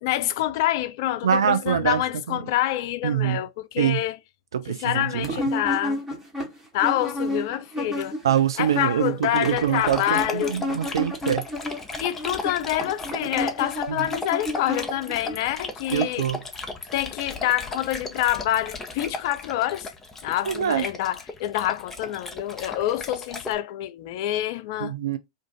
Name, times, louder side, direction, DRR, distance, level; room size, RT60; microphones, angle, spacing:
voice 1, 0.0-4.2 4.7-6.0 6.7-8.2 8.6-10.6 12.0-16.3 16.9-19.9 20.2-24.9, left 13 dB, 55° left, 0.4 m, -27 dB
voice 2, 1.2-2.0 2.3-2.4 3.0-3.4 3.8-4.0 4.5-5.3 8.2-11.5 13.9-14.1 15.9-16.4 20.4-20.9 24.8-25.2, right 9 dB, 75° right, 0.4 m, -24 dB
sound 1, 5.2-8.4 8.6-15.3, left 1 dB, 15° right, 1.1 m, -31 dB
Dog, 9.3-23.5, left 2 dB, 15° left, 0.7 m, -36 dB
2.5 x 2.4 x 3.7 m
figure-of-eight pair, 95°, 2 cm